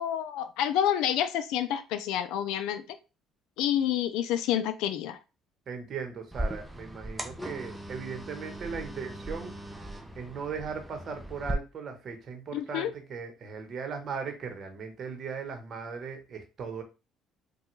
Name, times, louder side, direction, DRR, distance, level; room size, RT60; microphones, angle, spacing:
voice 1, 0.0-2.8 3.6-5.2 12.5-12.9, left 10 dB, 80° left, 0.4 m, -28 dB
voice 2, 5.7-9.7 10.1-16.8, right 5 dB, 50° right, 0.9 m, -38 dB
sound 1, 6.3-11.5, right 1 dB, 5° right, 0.5 m, -38 dB
3.3 x 2.2 x 3.1 m
supercardioid pair, 85°, 0 cm